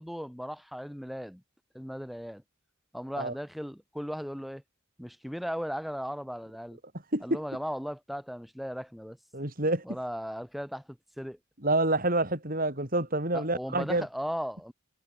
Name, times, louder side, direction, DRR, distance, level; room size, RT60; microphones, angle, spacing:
voice 1, 0.0-1.4 1.7-2.4 2.9-4.6 5.0-6.8 7.2-9.2 9.8-11.4 13.3-14.7, equal, ahead, 5.6 m, -37 dB
voice 2, 9.3-9.8 11.6-14.1, right 2 dB, 40° right, 5.9 m, -27 dB
head